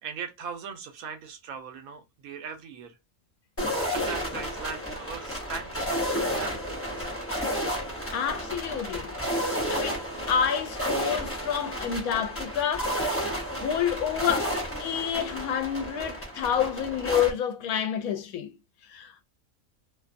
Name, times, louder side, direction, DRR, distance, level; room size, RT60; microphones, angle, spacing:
voice 1, 0.0-3.0 3.7-7.3, right 6 dB, 85° right, 1.1 m, -40 dB
sound 1, 3.6-17.3, equal, 15° left, 0.6 m, -31 dB
voice 2, 8.1-9.1 9.4-12.9 13.6-14.5 14.8-18.5 18.9-19.2, left 8 dB, 85° left, 1.0 m, -28 dB
2.7 x 2.2 x 2.5 m
omnidirectional pair, 1.5 m